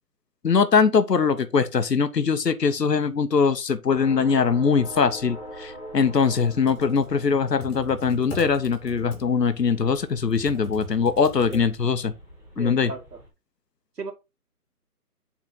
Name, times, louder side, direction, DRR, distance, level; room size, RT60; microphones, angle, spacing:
voice 1, 0.4-12.1 12.6-12.9, left 5 dB, 85° left, 1.0 m, -22 dB
sound 1, 3.9-13.3, equal, 5° right, 1.4 m, -43 dB
Computer keyboard, 6.5-12.1, left 2 dB, 10° left, 1.5 m, -40 dB
voice 2, 12.6-13.2 14.0-14.1, right 3 dB, 80° right, 2.3 m, -35 dB
7.5 x 4.2 x 3.8 m
figure-of-eight pair, 150°, 47 cm